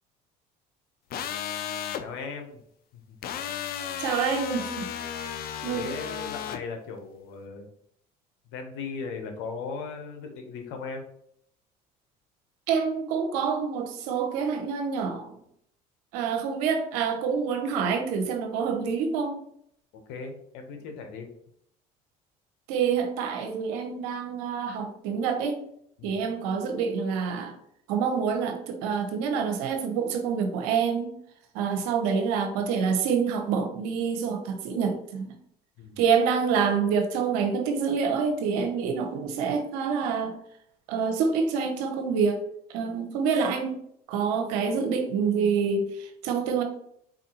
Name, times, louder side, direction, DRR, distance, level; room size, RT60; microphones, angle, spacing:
sound 1, 1.1-2.0 3.2-6.6, left 9 dB, 50° left, 0.4 m, -34 dB
voice 1, 2.0-2.6 2.9-3.2 5.7-7.7 8.5-11.0 19.9-21.3 26.0-26.2 35.8-36.0, left 5 dB, 70° left, 5 dB, 0.8 m, -37 dB
voice 2, 4.0-4.9 5.6-5.9 12.7-15.3 16.1-19.4 22.7-25.6 26.0-27.6 27.9-31.1 31.5-35.4 36.0-40.4 40.9-42.4 42.7-43.8 44.1-46.6, right 6 dB, 80° right, 5 dB, 0.7 m, -27 dB
4.1 x 2.5 x 2.8 m, 0.69 s
hypercardioid pair, 70°, 20 cm